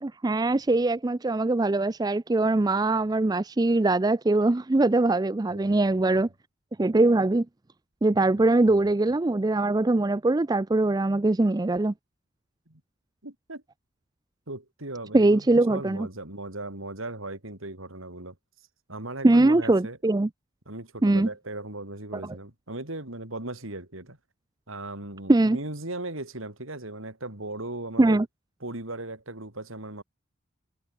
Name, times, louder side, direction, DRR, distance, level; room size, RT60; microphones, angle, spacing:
voice 1, 0.0-6.3 6.8-7.4 8.0-11.9 15.1-16.1 19.2-20.3 21.0-21.3 25.3-25.6 28.0-28.3, right 2 dB, 20° right, 0.4 m, -22 dB
voice 2, 5.5-6.2 8.4-8.5 8.7-8.8 12.7-12.8 13.2-13.6 14.5-18.3 18.9-20.0 20.7-24.2 24.7-28.2 28.6-30.0, right 2 dB, 70° right, 4.1 m, -37 dB
head